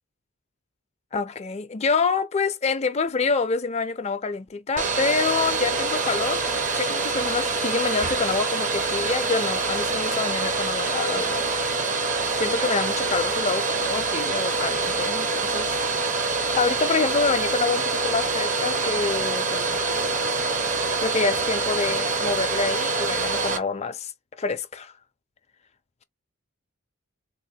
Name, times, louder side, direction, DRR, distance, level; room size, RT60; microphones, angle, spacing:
voice 1, 1.1-6.4 6.7-11.4 12.4-15.9 16.5-19.9 21.0-24.1 24.4-24.9, left 4 dB, 30° left, 0.4 m, -27 dB
Domestic sounds home sounds, 4.8-23.6, right 3 dB, 35° right, 0.7 m, -25 dB
3.6 x 2.1 x 2.7 m
head